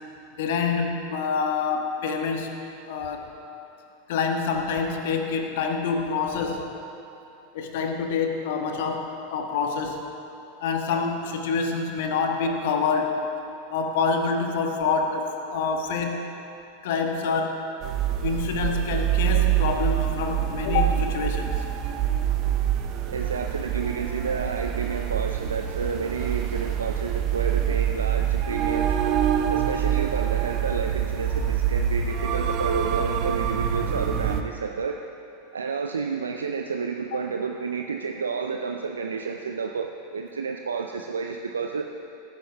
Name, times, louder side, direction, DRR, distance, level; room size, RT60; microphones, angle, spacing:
voice 1, 0.3-2.5 2.9-3.3 4.1-6.7 7.5-10.1 10.6-13.3 13.7-16.3 16.8-17.7 18.2-21.6 37.1-37.2, left 5 dB, 60° left, 4 dB, 1.3 m, -26 dB
sound 1, 17.8-34.4, right 10 dB, 45° right, 0.8 m, -25 dB
voice 2, 23.1-28.9 29.5-35.0 35.5-41.9, right 5 dB, 80° right, 4 dB, 0.5 m, -30 dB
17.5 x 9.8 x 3.5 m, 2.9 s
figure-of-eight pair, 90°, 0 cm